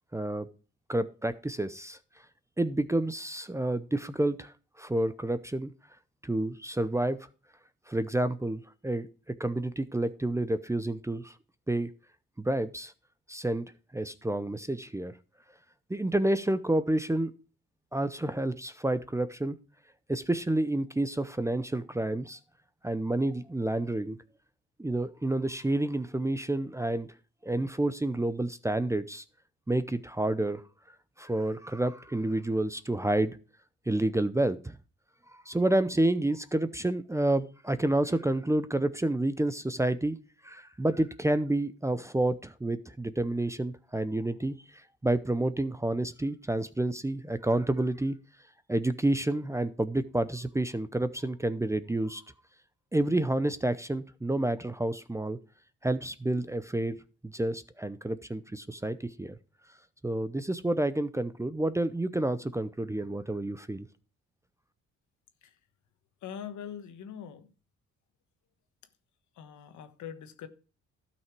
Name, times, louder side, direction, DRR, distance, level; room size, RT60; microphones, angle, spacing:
voice 1, 0.1-0.5 0.9-2.0 2.6-5.7 6.2-7.2 7.9-11.3 11.7-11.9 12.4-12.9 13.3-13.6 13.9-15.1 15.9-17.3 17.9-19.6 20.1-22.4 22.8-24.2 24.8-27.1 27.4-29.2 29.7-30.6 31.2-33.4 33.9-34.8 35.3-40.2 40.4-44.6 45.0-48.2 48.7-52.2 52.9-55.4 55.8-57.0 57.3-59.4 60.0-63.9, right 1 dB, 10° right, 0.6 m, -29 dB
voice 2, 66.2-67.5 69.4-70.5, left 8 dB, 75° left, 1.3 m, -42 dB
12.5 x 5.9 x 4.6 m
cardioid pair, 90°, 30 cm